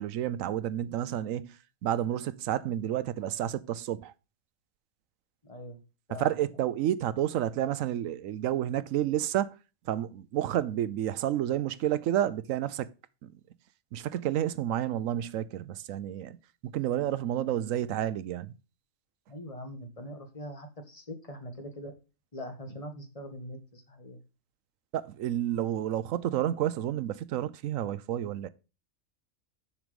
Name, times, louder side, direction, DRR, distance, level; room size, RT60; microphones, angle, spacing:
voice 1, 0.0-1.6 1.8-4.1 6.2-9.5 9.9-12.9 13.2-13.3 13.9-16.4 16.6-18.5 24.9-28.5, right 11 dB, 80° right, 1.0 m, -30 dB
voice 2, 5.4-5.8 6.1-6.4 19.3-21.9 22.3-24.2, equal, 25° left, 1.6 m, -42 dB
7.2 x 6.1 x 5.1 m
omnidirectional pair, 1.4 m